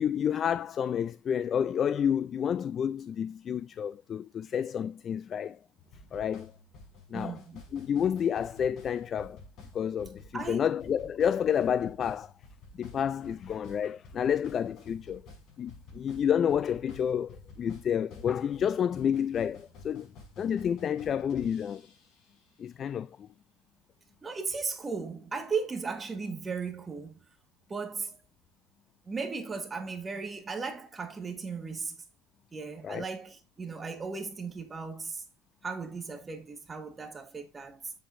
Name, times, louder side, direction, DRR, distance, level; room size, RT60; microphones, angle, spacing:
voice 1, 0.0-5.6 6.1-6.5 7.1-7.4 7.7-9.4 9.7-12.3 12.8-15.2 15.6-20.1 20.4-21.8 22.6-23.3 32.8-33.0, left 8 dB, 30° left, 0.4 m, -29 dB
sound 1, 5.8-22.4, left 3 dB, 45° left, 5.8 m, -51 dB
voice 2, 7.1-7.6 10.3-10.7 24.2-27.1 27.7-28.2 29.1-32.0 32.5-35.2 35.6-37.9, right 4 dB, 15° right, 1.5 m, -36 dB
8.5 x 7.7 x 2.6 m
supercardioid pair, 140°, 0 cm